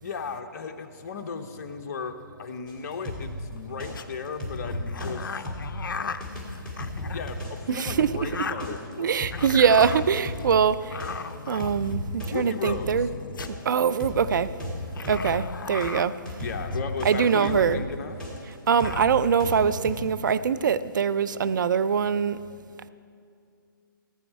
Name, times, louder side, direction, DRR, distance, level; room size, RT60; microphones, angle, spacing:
voice 1, 0.0-5.5 7.0-9.2 12.3-13.1 16.4-18.2, left 5 dB, 45° left, 6 dB, 0.9 m, -35 dB
sound 1, 2.7-5.1 5.4-15.9 16.2-19.9, left 1 dB, 5° left, 2.2 m, -35 dB
sound 2, 3.6-4.0 4.6-7.4 8.0-8.9 9.3-10.5 10.9-12.1 12.9-13.6 14.9-16.1 16.7-17.9 18.3-18.4 18.6-19.1, left 6 dB, 65° left, 0.5 m, -37 dB
voice 2, 7.7-8.1 9.0-11.1 11.5-13.1 13.6-14.5 15.1-16.1 17.0-17.8 18.7-22.4, right 7 dB, 60° right, 13 dB, 0.5 m, -23 dB
16.0 x 9.0 x 4.6 m, 2.4 s
figure-of-eight pair, 140°, 12 cm